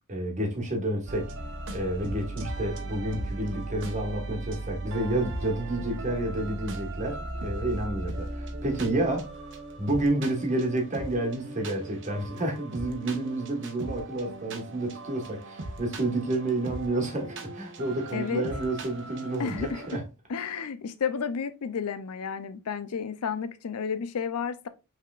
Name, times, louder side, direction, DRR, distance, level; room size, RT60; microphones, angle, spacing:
voice 1, 0.1-1.3 1.7-9.3 9.8-20.0, right 1 dB, 35° right, 1.4 m, -30 dB
sound 1, 1.1-20.0, right 2 dB, 60° right, 0.9 m, -38 dB
voice 2, 18.1-18.4 19.4-19.8 20.3-24.7, left 6 dB, 85° left, 0.5 m, -31 dB
5.6 x 3.5 x 2.4 m
head